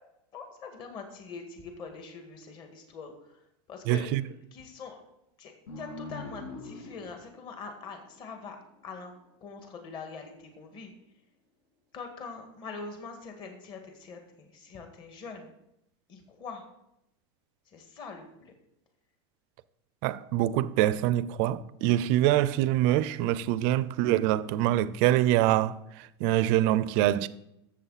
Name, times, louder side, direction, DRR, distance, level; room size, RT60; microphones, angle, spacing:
voice 1, 0.3-4.1 4.5-5.0 5.4-8.6 8.8-9.1 9.4-10.9 11.9-15.5 16.1-16.6 17.7-18.5, left 4 dB, 35° left, 1.9 m, -43 dB
voice 2, 3.9-4.2 20.0-25.7 26.2-27.3, right 13 dB, 50° right, 0.6 m, -25 dB
sound 1, 5.7-8.8, left 3 dB, 65° left, 2.0 m, -43 dB
12.5 x 7.4 x 4.2 m
supercardioid pair, 150°, 14 cm